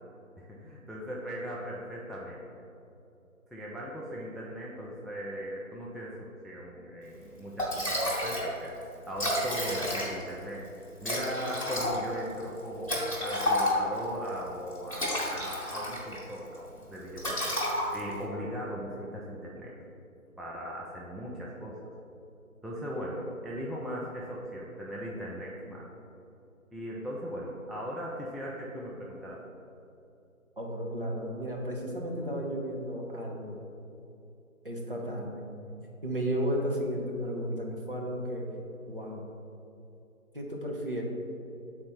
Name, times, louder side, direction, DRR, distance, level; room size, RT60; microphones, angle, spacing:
voice 1, 0.4-2.4 3.5-8.7 9.1-10.6 11.0-17.5 17.9-19.7 20.4-21.8 22.6-25.8 26.7-29.4, equal, ahead, -5 dB, 0.4 m, -38 dB
Liquid, 7.2-7.3 7.6-8.5 8.8-8.9 9.1-10.3 11.0-14.0 14.7-16.2 16.5-16.8 17.2-18.2, left 1 dB, 25° left, 1.3 m, -30 dB
voice 2, 30.6-33.6 34.6-35.5 36.0-38.5 38.9-39.3 40.3-41.0, equal, 40° right, -2 dB, 1.0 m, -33 dB
7.1 x 4.2 x 4.5 m, 2.8 s
figure-of-eight pair, 165°, 43 cm